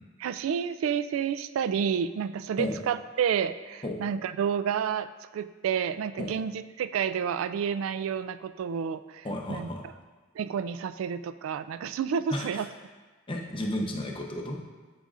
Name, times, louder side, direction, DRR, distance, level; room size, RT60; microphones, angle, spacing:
voice 1, 0.2-5.1 5.3-9.7 10.4-12.7, right 7 dB, 90° right, 14 dB, 0.3 m, -30 dB
voice 2, 9.2-9.8 12.3-12.6 13.3-14.6, left 1 dB, 25° left, 0 dB, 0.8 m, -32 dB
12.5 x 5.0 x 2.5 m, 1.3 s
head